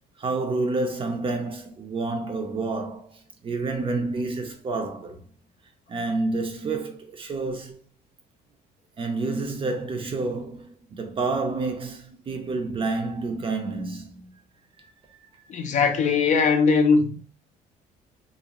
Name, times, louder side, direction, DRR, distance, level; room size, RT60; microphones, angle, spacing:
voice 1, 0.2-5.2 5.9-7.8 9.0-14.3 15.1-15.2, right 3 dB, 30° right, 0.5 m, -29 dB
voice 2, 15.5-17.2, left 5 dB, 45° left, 0.4 m, -20 dB
2.5 x 2.0 x 2.9 m
cardioid pair, 110°, 17 cm